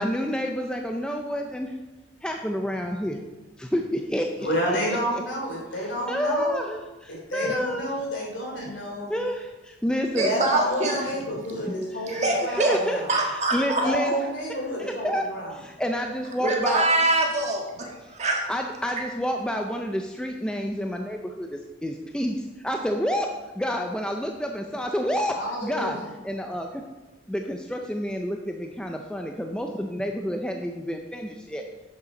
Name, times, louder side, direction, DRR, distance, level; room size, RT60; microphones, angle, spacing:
voice 1, 0.0-1.7 2.2-3.2 3.6-4.8 5.8-7.8 9.1-10.3 11.6-11.7 12.0-14.1 14.8-15.2 15.5-16.9 18.5-23.3 23.6-26.0 26.2-26.8 27.3-31.6, equal, 5° left, 3 dB, 0.4 m, -29 dB
voice 2, 4.4-6.7 7.1-9.1 10.2-13.1 13.8-15.5 25.4-26.0, equal, 75° left, -1 dB, 3.0 m, -30 dB
voice 3, 10.1-11.0 12.1-12.8 13.1-13.8 16.4-18.5, right 2 dB, 35° right, -1 dB, 1.6 m, -24 dB
8.3 x 6.6 x 5.3 m, 1.1 s
head